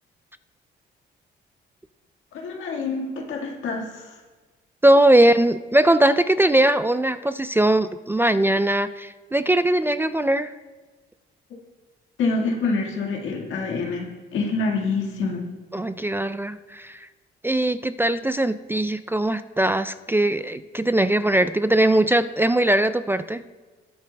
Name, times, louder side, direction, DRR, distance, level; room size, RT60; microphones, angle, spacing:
voice 1, 2.3-4.1 12.2-15.5, left 3 dB, 80° left, 0 dB, 1.7 m, -26 dB
voice 2, 4.8-10.5 15.7-17.1 17.4-23.4, right 1 dB, 10° right, 12 dB, 0.3 m, -20 dB
20.0 x 7.4 x 2.2 m, 1.3 s
cardioid pair, 90°, 20 cm